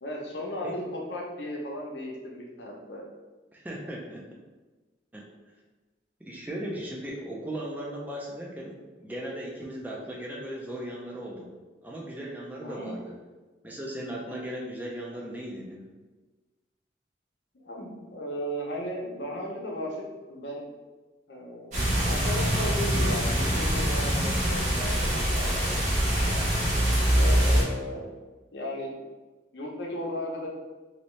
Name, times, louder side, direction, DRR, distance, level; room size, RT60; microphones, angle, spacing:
voice 1, 0.0-3.0 12.6-13.0 17.5-20.7 21.3-26.5 27.2-28.0 28.5-29.0 29.5-30.5, equal, 80° left, -2 dB, 0.7 m, -36 dB
voice 2, 3.5-4.3 5.1-5.3 6.2-11.5 11.8-13.2 13.6-15.9, right 1 dB, 10° right, -3 dB, 0.4 m, -37 dB
sound 1, 21.7-27.6, equal, 40° right, 1.0 m, -24 dB
3.1 x 2.8 x 3.1 m, 1.3 s
head